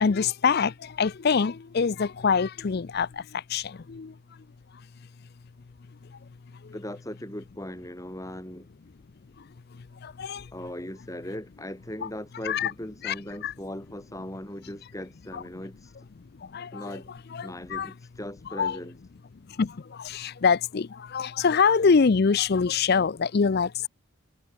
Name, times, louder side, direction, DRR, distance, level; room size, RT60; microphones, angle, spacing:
voice 1, 0.0-4.1 10.0-10.4 12.5-12.7 13.0-13.1 13.4-13.5 15.3-15.4 16.5-17.0 17.3-17.9 18.6-18.8 19.6-23.9, left 5 dB, 45° left, 0.4 m, -25 dB
voice 2, 6.7-8.7 10.5-16.1 16.7-17.1 17.4-19.0, left 1 dB, 15° left, 3.7 m, -39 dB
head